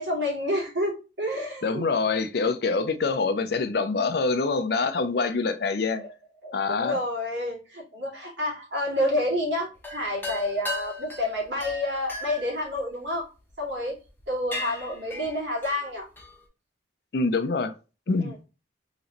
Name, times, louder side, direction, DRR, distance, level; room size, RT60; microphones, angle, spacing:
voice 1, 0.0-1.8 6.0-6.1 6.4-13.3 13.6-14.0 14.3-16.1 18.2-18.3, left 1 dB, 75° right, 2.1 m, -29 dB
voice 2, 1.6-6.0 6.5-7.0 17.1-17.7 18.1-18.3, left 4 dB, 60° left, 0.5 m, -25 dB
sound 1, 9.8-13.5 14.0-14.2 14.5-16.4, left 2 dB, 10° left, 0.7 m, -37 dB
3.9 x 3.0 x 2.9 m
head